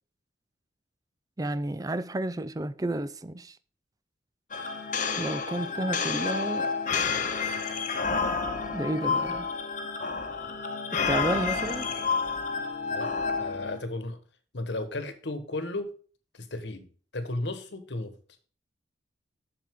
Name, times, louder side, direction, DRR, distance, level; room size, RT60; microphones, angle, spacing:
voice 1, 1.4-3.6 5.1-6.7 8.7-9.5 10.9-11.9, right 1 dB, 20° right, 0.4 m, -31 dB
sound 1, 4.5-13.8, left 5 dB, 45° left, 1.0 m, -30 dB
voice 2, 13.4-14.2 14.5-15.9 16.3-18.1, left 2 dB, 65° left, 1.3 m, -34 dB
7.7 x 6.8 x 3.6 m
head